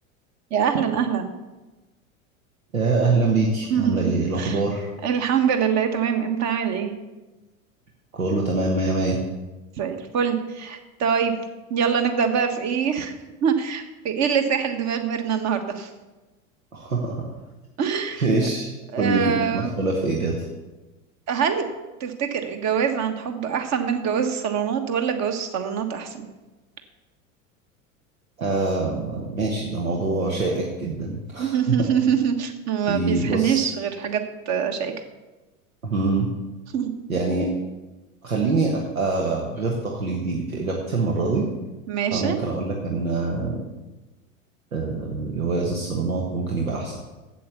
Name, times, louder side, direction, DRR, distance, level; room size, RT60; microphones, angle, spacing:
voice 1, 0.5-1.3 3.7-4.1 4.4-4.6 5.0-6.9 9.8-11.3 11.7-13.1 13.4-15.9 17.8-18.2 18.9-19.8 21.3-21.6 22.0-26.2 31.4-34.2 34.5-34.9 36.7-36.9 41.9-42.4, right 7 dB, 40° right, 6 dB, 1.4 m, -24 dB
voice 2, 2.7-4.9 8.1-9.2 16.7-17.3 18.2-18.7 19.0-20.4 28.4-31.7 32.9-33.7 35.8-36.3 37.1-37.5 38.2-41.5 42.1-43.6 44.7-47.0, right 3 dB, 85° right, -1 dB, 1.4 m, -24 dB
8.5 x 7.9 x 6.8 m, 1.1 s
hypercardioid pair, 80°, 40 cm